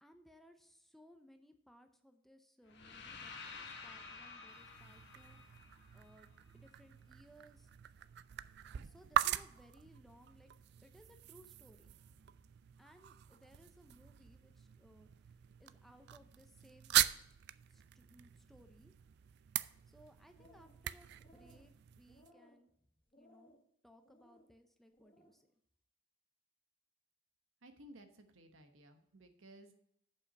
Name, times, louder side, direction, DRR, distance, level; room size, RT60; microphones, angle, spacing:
voice 1, 0.0-7.7 8.8-10.5 10.8-12.3 12.8-15.3 15.6-17.0 17.7-18.9 19.9-22.7 23.2-23.6 23.8-25.5, equal, ahead, 6 dB, 0.7 m, -63 dB
sound 1, 2.7-6.7, left 4 dB, 60° left, 1.4 m, -51 dB
sound 2, 4.5-22.3, right 11 dB, 55° right, 0.3 m, -41 dB
sound 3, 20.2-20.8 21.1-21.7 22.1-22.6 23.1-23.6 24.0-24.5 24.9-25.3, left 1 dB, 25° left, 1.5 m, -64 dB
voice 2, 27.6-29.7, right 1 dB, 75° right, 6 dB, 1.2 m, -58 dB
7.2 x 5.6 x 7.3 m, 0.71 s
head